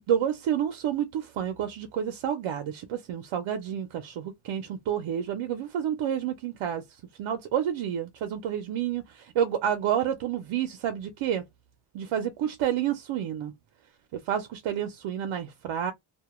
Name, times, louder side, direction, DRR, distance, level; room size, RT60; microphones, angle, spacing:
voice 1, 0.1-6.8 7.2-11.4 11.9-13.5 14.1-15.9, right 9 dB, 85° right, 0.6 m, -29 dB
2.2 x 2.1 x 2.9 m
wide cardioid pair, 160°, 48 cm